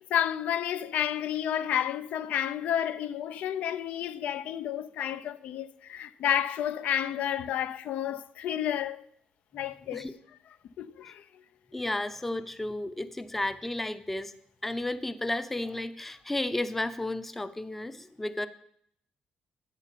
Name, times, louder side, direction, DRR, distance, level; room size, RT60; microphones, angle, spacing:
voice 1, 0.1-9.1 9.5-10.1 10.8-11.2, left 10 dB, 80° left, 0.6 m, -30 dB
voice 2, 11.7-14.3 14.6-18.5, left 1 dB, 10° left, 0.6 m, -33 dB
11.0 x 8.0 x 9.0 m
cardioid pair, 170°, 3 cm